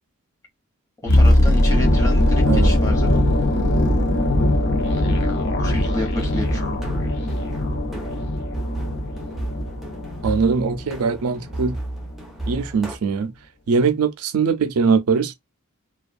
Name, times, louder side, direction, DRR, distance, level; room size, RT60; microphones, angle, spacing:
voice 1, 1.0-3.1 5.6-6.8, left 1 dB, 15° left, 0.9 m, -30 dB
sound 1, 1.1-11.1 11.3-11.5, left 1 dB, 55° left, 0.7 m, -20 dB
sound 2, 6.1-13.0, right 1 dB, ahead, 0.5 m, -33 dB
voice 2, 10.2-11.8 12.5-13.3 13.7-15.3, right 5 dB, 85° right, 0.4 m, -21 dB
2.3 x 2.2 x 2.4 m
head